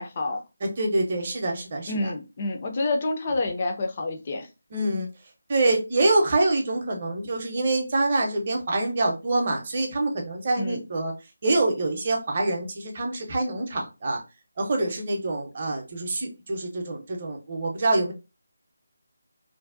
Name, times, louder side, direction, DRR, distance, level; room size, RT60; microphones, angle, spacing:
voice 1, 0.0-0.4 1.9-4.5 10.6-10.8, left 2 dB, 30° left, 0.4 m, -28 dB
voice 2, 0.6-2.1 4.7-5.1 5.5-11.1 11.4-14.2 14.6-18.1, right 2 dB, 35° right, 0.6 m, -25 dB
2.6 x 2.0 x 2.4 m
figure-of-eight pair, 155°, 0 cm